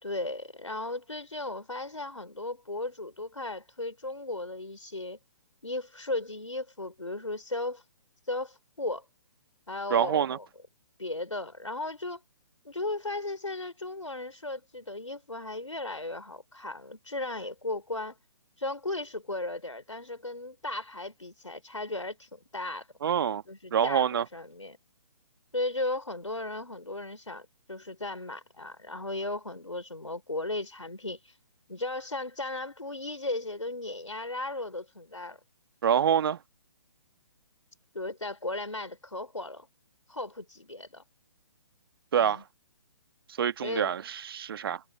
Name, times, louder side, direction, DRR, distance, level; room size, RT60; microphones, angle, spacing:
voice 1, 0.0-5.2 5.6-7.8 8.3-9.0 9.7-10.5 11.0-12.2 12.6-18.2 18.6-22.9 23.5-24.8 25.5-31.3 31.7-35.4 37.9-39.7 40.1-41.0 42.2-42.4 43.6-43.9, left 2 dB, 90° left, 4.1 m, -36 dB
voice 2, 9.9-10.4 23.0-23.4 23.7-24.2 35.8-36.4 42.1-42.4 43.4-44.8, right 8 dB, 50° right, 1.6 m, -26 dB
figure-of-eight pair, 135°, 16 cm